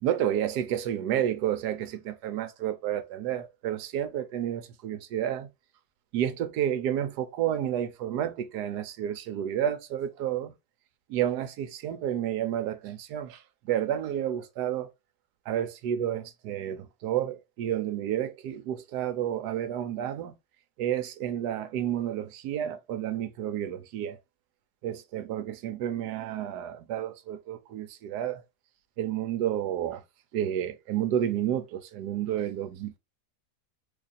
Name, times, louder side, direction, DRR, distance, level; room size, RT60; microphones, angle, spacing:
voice 1, 0.0-5.5 6.1-10.5 11.1-13.4 13.6-14.9 15.5-20.3 20.8-24.2 24.8-28.4 29.0-30.0 30.3-33.0, right 10 dB, 75° right, 1.1 m, -30 dB
2.9 x 2.4 x 4.0 m
omnidirectional pair, 1.8 m